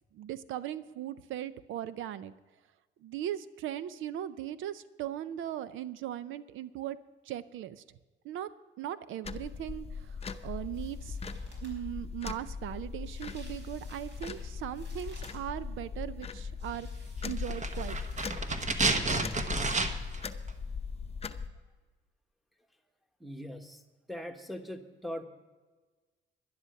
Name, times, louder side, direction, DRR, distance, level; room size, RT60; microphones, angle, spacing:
voice 1, 0.1-2.3 3.0-7.0 7.3-7.8 8.2-8.5 8.8-10.2 10.4-11.2 11.6-16.9 17.2-18.3, right 11 dB, 80° right, 15 dB, 0.5 m, -38 dB
sound 1, 9.2-21.5, left 5 dB, 30° left, 0.7 m, -39 dB
sound 2, 10.3-10.4 10.7-11.8 13.0-15.5 16.6-18.5 18.8-18.9, right 1 dB, 65° right, 5.3 m, -56 dB
sound 3, 17.4-20.2 20.5-20.6, right 3 dB, 35° right, 1.2 m, -30 dB
voice 2, 23.2-23.8 24.1-25.2, left 1 dB, ahead, 4 dB, 1.2 m, -40 dB
11.0 x 11.0 x 5.8 m, 1.3 s
cardioid pair, 90°, 20 cm